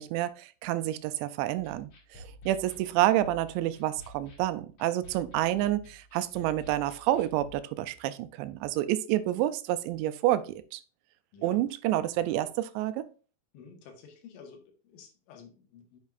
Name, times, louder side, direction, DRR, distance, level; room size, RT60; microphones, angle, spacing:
voice 1, 0.0-10.8 11.4-13.1, right 14 dB, 85° right, 13 dB, 2.8 m, -29 dB
sound 1, 1.6-7.5, left 1 dB, 50° left, 3.8 m, -51 dB
voice 2, 13.5-16.0, left 5 dB, 85° left, 5 dB, 3.7 m, -51 dB
8.3 x 7.1 x 2.5 m, 0.35 s
omnidirectional pair, 5.1 m